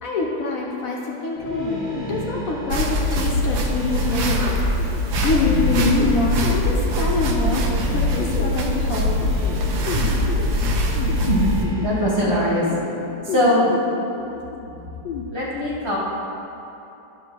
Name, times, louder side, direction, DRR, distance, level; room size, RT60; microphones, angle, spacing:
voice 1, 0.0-4.5 4.9-9.1, left 3 dB, 60° left, -2 dB, 1.0 m, -25 dB
sound 1, 1.4-12.7, right 1 dB, 15° right, 1.3 m, -36 dB
sound 2, 1.5-15.2, left 4 dB, 80° left, 1.3 m, -33 dB
sound 3, 2.7-11.7, left 1 dB, 65° right, 1.2 m, -22 dB
voice 2, 11.8-12.6 13.2-13.6 15.3-16.0, equal, 20° left, -7 dB, 0.7 m, -21 dB
9.3 x 3.3 x 6.1 m, 2.9 s
omnidirectional pair, 2.0 m